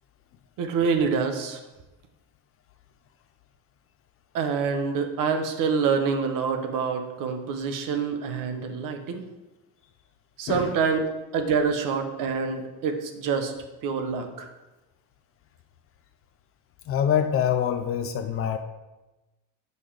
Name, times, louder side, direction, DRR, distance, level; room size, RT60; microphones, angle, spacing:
voice 1, 0.6-1.6 4.3-9.2 10.4-11.1 11.3-13.5 13.8-14.5, right 5 dB, 55° right, 6 dB, 1.0 m, -26 dB
voice 2, 10.5-10.8 16.9-18.6, left 9 dB, 35° left, 8 dB, 0.4 m, -25 dB
7.8 x 5.4 x 5.0 m, 1.1 s
cardioid pair, 175°, 39 cm